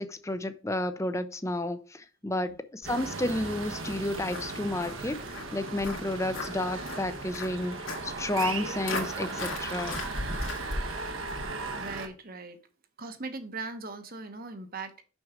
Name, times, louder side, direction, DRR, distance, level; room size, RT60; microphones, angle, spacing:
voice 1, 0.0-7.7 8.0-10.0, left 1 dB, 15° left, 0.6 m, -31 dB
Walk footsteps, 2.8-11.5, left 2 dB, 75° left, 2.1 m, -39 dB
sound 1, 2.8-12.1, right 3 dB, 70° right, 1.3 m, -37 dB
voice 2, 11.8-12.6 13.0-15.0, right 3 dB, 45° right, 1.1 m, -39 dB
6.3 x 6.2 x 5.0 m
head